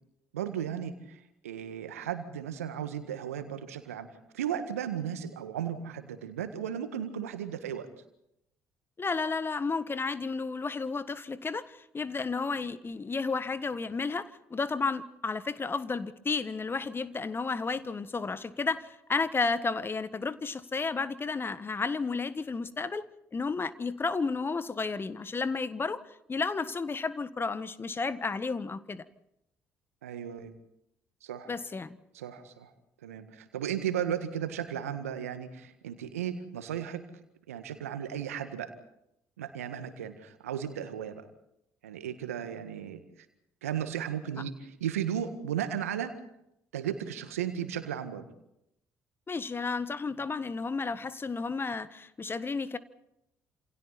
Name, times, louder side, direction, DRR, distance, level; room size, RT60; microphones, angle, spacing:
voice 1, 0.3-4.1 4.3-7.9 30.0-30.5 31.2-31.5 32.1-32.7 33.0-37.0 37.5-38.7 39.4-41.3 41.8-43.0 43.6-46.1 46.7-48.3, right 9 dB, 85° right, 9 dB, 1.8 m, -35 dB
voice 2, 9.0-23.0 23.3-26.0 26.3-29.0 31.5-32.0 49.3-52.8, left 4 dB, 30° left, 14 dB, 1.5 m, -32 dB
29.0 x 28.0 x 4.2 m, 0.81 s
hypercardioid pair, 50°, 8 cm